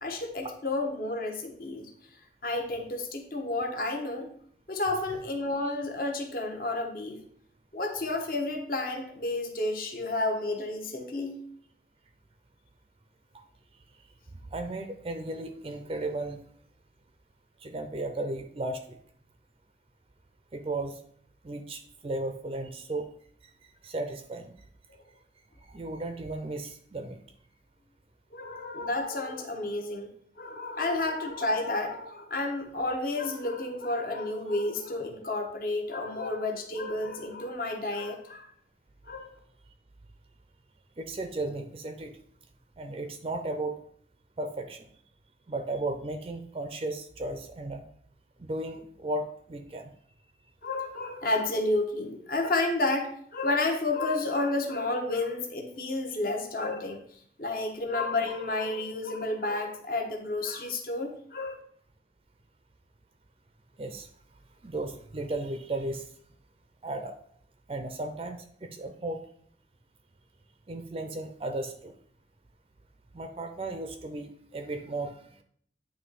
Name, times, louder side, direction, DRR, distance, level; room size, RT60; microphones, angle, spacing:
voice 1, 0.0-1.9 2.4-4.3 4.7-7.2 7.7-11.4 28.3-30.1 30.4-38.5 39.1-39.3 50.6-57.0 57.4-61.6, left 2 dB, 55° left, 2 dB, 1.1 m, -31 dB
voice 2, 14.5-16.4 17.6-19.0 20.5-21.0 21.4-23.1 23.8-24.5 25.7-27.2 36.2-36.3 41.0-42.1 42.8-43.8 44.4-44.9 45.5-47.8 48.4-49.9 63.8-64.1 64.6-66.1 66.8-67.1 67.7-69.2 70.7-71.9 73.1-75.2, right 2 dB, 30° right, 7 dB, 0.4 m, -35 dB
9.1 x 3.0 x 4.1 m, 0.63 s
head